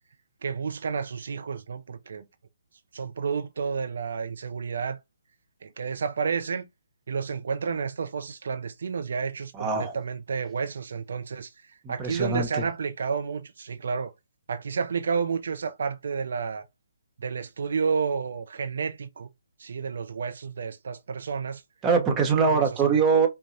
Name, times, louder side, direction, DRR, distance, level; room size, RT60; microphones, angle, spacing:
voice 1, 0.4-2.3 2.9-5.0 5.6-6.7 7.1-14.1 14.5-16.6 17.2-19.3 19.6-21.6 22.5-23.0, right 5 dB, 65° right, 0.5 m, -31 dB
voice 2, 9.6-9.9 12.0-12.5 21.8-23.3, right 5 dB, 20° right, 0.9 m, -22 dB
5.3 x 2.2 x 2.6 m
figure-of-eight pair, 140°, 0 cm